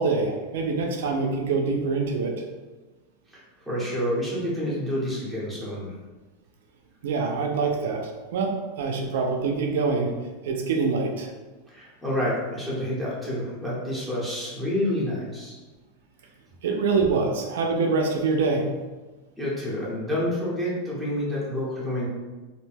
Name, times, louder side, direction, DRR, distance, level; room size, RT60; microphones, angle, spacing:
voice 1, 0.0-2.4 7.0-10.1 10.4-11.3 16.6-18.7, right 4 dB, 80° right, 2 dB, 0.4 m, -25 dB
voice 2, 3.3-5.9 11.7-15.6 19.4-22.1, left 1 dB, ahead, -9 dB, 0.8 m, -28 dB
2.5 x 2.1 x 3.3 m, 1.2 s
supercardioid pair, 165°, 0 cm